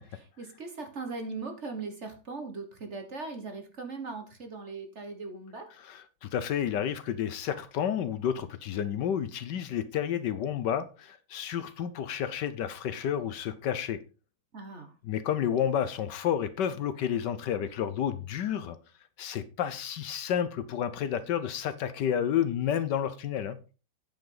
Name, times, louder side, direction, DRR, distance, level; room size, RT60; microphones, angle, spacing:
voice 1, 0.0-5.7 14.5-14.9, right 3 dB, 40° right, 1.5 m, -39 dB
voice 2, 5.8-14.0 15.0-18.8 19.2-23.6, left 9 dB, 70° left, 1.3 m, -30 dB
8.9 x 8.0 x 3.8 m
omnidirectional pair, 2.1 m